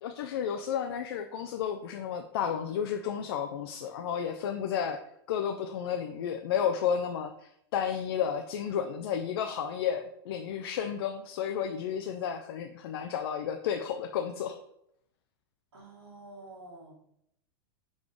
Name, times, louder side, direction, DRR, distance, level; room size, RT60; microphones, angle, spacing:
voice 1, 0.0-5.0 5.3-14.6, left 8 dB, 75° left, 6 dB, 0.4 m, -32 dB
voice 2, 15.7-17.1, right 2 dB, 85° right, -9 dB, 1.7 m, -49 dB
3.9 x 3.6 x 3.1 m, 0.74 s
hypercardioid pair, 115°, 13 cm